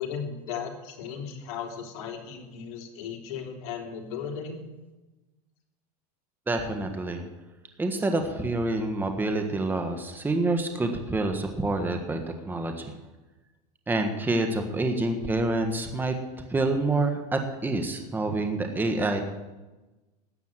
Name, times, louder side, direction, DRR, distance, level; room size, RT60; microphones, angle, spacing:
voice 1, 0.0-4.6, left 7 dB, 70° left, 2 dB, 3.3 m, -36 dB
voice 2, 6.5-7.3 7.8-12.2 12.5-12.9 13.9-16.1 16.5-19.2, right 2 dB, 10° right, 5 dB, 1.4 m, -27 dB
14.0 x 9.4 x 7.5 m, 1.1 s
supercardioid pair, 135°, 20 cm